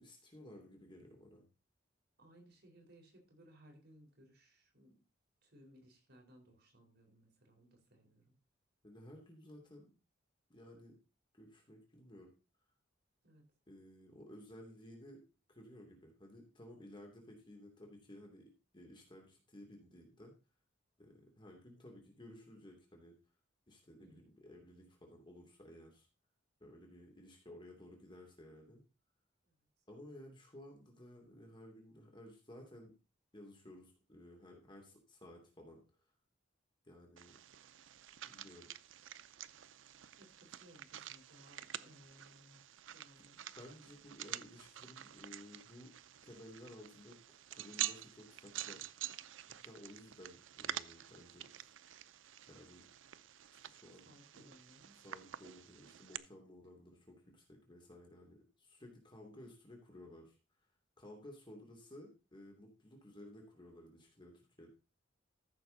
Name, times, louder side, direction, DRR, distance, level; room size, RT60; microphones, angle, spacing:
voice 1, 0.0-1.4 8.8-9.9 10.5-11.0 11.3-12.3 13.7-15.2 15.5-20.3 21.0-23.1 23.7-26.1 26.6-28.8 29.9-32.9 33.3-35.8 36.8-37.4 38.2-38.7 43.2-43.3 43.6-45.9 46.2-48.8 49.6-51.8 52.4-52.8 53.6-54.1 54.4-54.5 55.0-60.4 61.0-64.7, left 1 dB, 25° left, 2.9 m, -56 dB
voice 2, 2.2-5.0 5.4-8.3 13.2-13.4 24.0-24.3 29.4-29.7 40.1-43.4 54.0-55.0, equal, 60° right, 4.3 m, -63 dB
sound 1, 37.2-56.2, right 12 dB, 90° right, 0.6 m, -48 dB
14.0 x 6.9 x 4.0 m
head